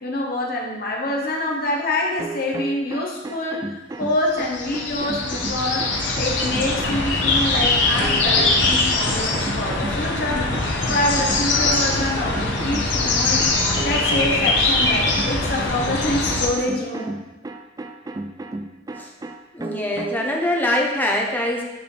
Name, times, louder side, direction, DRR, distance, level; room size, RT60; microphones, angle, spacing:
voice 1, 0.0-3.6 4.0-5.8 6.2-13.5 13.8-17.2, left 1 dB, 50° left, -1 dB, 1.2 m, -26 dB
sound 1, 2.2-20.3, right 2 dB, 20° right, 0.3 m, -34 dB
sound 2, 4.3-16.5, left 3 dB, 70° left, 1.0 m, -22 dB
voice 2, 19.5-21.6, left 1 dB, 10° left, 0 dB, 0.8 m, -23 dB
9.6 x 4.1 x 3.3 m, 1.1 s
head